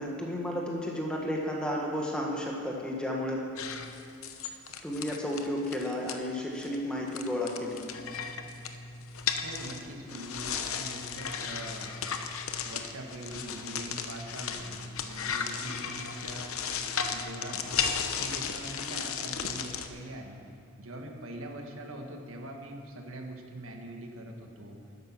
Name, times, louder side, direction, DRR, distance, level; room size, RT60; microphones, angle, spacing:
voice 1, 0.0-3.4 4.8-7.8 10.1-10.2, left 1 dB, 5° left, -2 dB, 1.6 m, -32 dB
sound 1, 3.6-6.2 6.6-6.8 7.1-19.9, left 6 dB, 75° left, 0.9 m, -35 dB
voice 2, 9.4-11.9 12.6-17.7 18.2-20.4 20.8-24.8, right 1 dB, 65° right, 2 dB, 1.5 m, -43 dB
13.0 x 10.5 x 6.0 m, 2.8 s
head